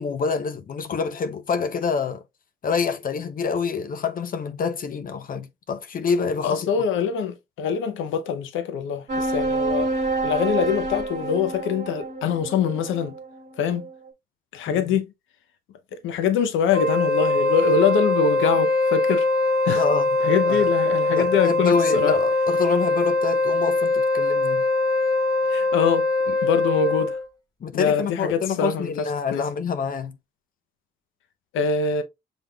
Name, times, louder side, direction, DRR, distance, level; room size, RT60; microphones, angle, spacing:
voice 1, 0.0-2.2 2.6-6.7 14.7-14.9 19.7-20.1 20.4-20.7 21.1-24.6 27.6-30.2, left 5 dB, 45° left, 0.6 m, -27 dB
voice 2, 6.4-9.9 10.2-13.1 13.6-13.8 14.5-15.1 16.0-19.3 19.6-19.8 20.2-22.1 25.5-27.2 27.7-28.9 29.3-29.4 31.5-32.0, left 6 dB, 85° left, 0.7 m, -24 dB
sound 1, 9.1-13.9, right 3 dB, 40° right, 1.8 m, -28 dB
Wind instrument woodwind instrument, 16.7-27.2, left 2 dB, 20° left, 1.2 m, -22 dB
5.8 x 3.4 x 2.3 m
cardioid pair, 90°, 20 cm